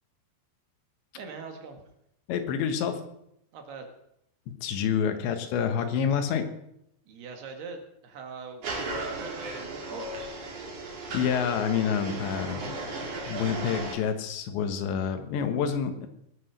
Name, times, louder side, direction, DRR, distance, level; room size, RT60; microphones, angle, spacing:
voice 1, 1.2-1.8 3.5-3.9 7.1-10.1, right 5 dB, 65° right, 4 dB, 3.7 m, -42 dB
voice 2, 2.3-3.0 4.5-6.5 11.1-12.7 13.3-16.1, left 7 dB, 85° left, 8 dB, 3.6 m, -28 dB
sound 1, 8.6-14.0, right 2 dB, 45° right, 3.9 m, -35 dB
20.5 x 8.1 x 6.4 m, 0.77 s
omnidirectional pair, 5.1 m